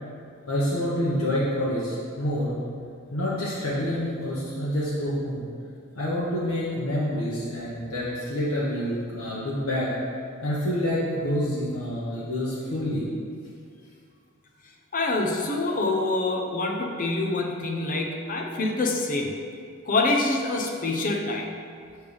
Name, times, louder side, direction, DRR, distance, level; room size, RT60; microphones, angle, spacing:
voice 1, 0.5-2.5 3.1-5.4 6.0-9.9 10.4-13.0, equal, 75° left, -8 dB, 1.2 m, -27 dB
voice 2, 14.9-19.4 19.8-21.5, left 2 dB, 40° left, 1 dB, 0.7 m, -26 dB
6.4 x 3.5 x 5.3 m, 2.3 s
head